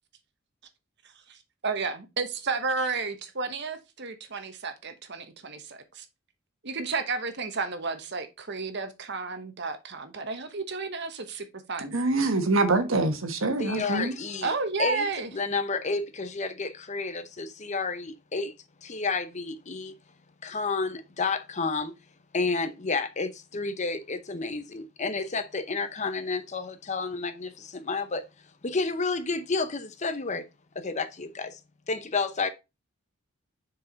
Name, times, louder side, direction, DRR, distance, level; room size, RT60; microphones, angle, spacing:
voice 1, 1.3-6.0 6.6-11.9 14.4-15.3, right 4 dB, 55° right, 1.2 m, -32 dB
voice 2, 11.9-14.1, right 2 dB, 70° right, 1.4 m, -25 dB
voice 3, 13.6-14.5 14.8-15.1 15.3-18.5 18.8-19.9 20.4-21.9 22.3-28.2 28.6-30.4 30.7-31.6 31.9-32.5, left 4 dB, 35° left, 0.7 m, -30 dB
6.5 x 4.8 x 3.9 m
head